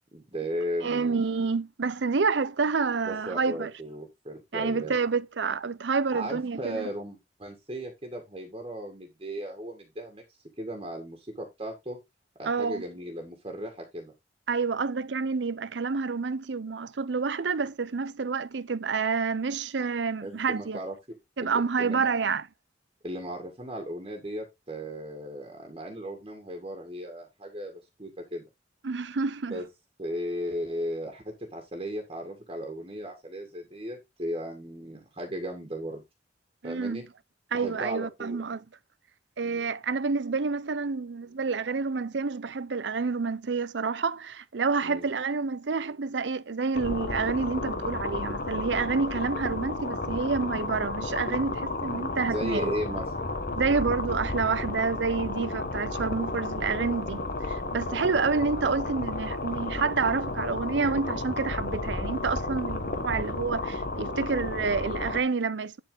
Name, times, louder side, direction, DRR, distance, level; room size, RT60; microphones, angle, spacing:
voice 1, 0.1-1.2 3.1-5.0 6.1-10.2 10.6-12.0 12.4-14.1 20.2-21.0 21.4-22.1 23.0-28.4 29.5-29.6 30.0-31.2 31.5-36.0 36.6-37.0 37.5-38.4 39.4-39.7 44.8-45.0 52.3-53.3, equal, 30° right, 2.0 m, -36 dB
voice 2, 0.8-3.7 4.5-6.9 12.4-12.8 14.5-20.8 21.4-22.5 28.8-29.6 36.6-37.0 37.5-38.6 39.4-52.7 53.5-65.8, right 4 dB, 75° right, 0.6 m, -28 dB
sound 1, 46.7-65.2, left 2 dB, 55° left, 1.4 m, -32 dB
11.0 x 4.5 x 4.0 m
head